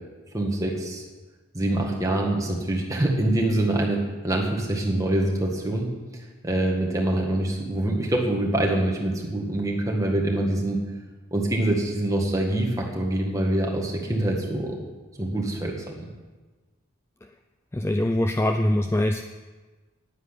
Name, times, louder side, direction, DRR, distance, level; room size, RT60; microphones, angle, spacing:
voice 1, 0.3-1.0 1.5-5.9 6.4-10.8 11.3-14.8 15.2-15.9, right 1 dB, 15° right, -1 dB, 1.8 m, -25 dB
voice 2, 17.7-19.2, left 1 dB, 10° left, 6 dB, 0.3 m, -23 dB
10.0 x 9.7 x 8.3 m, 1.3 s
head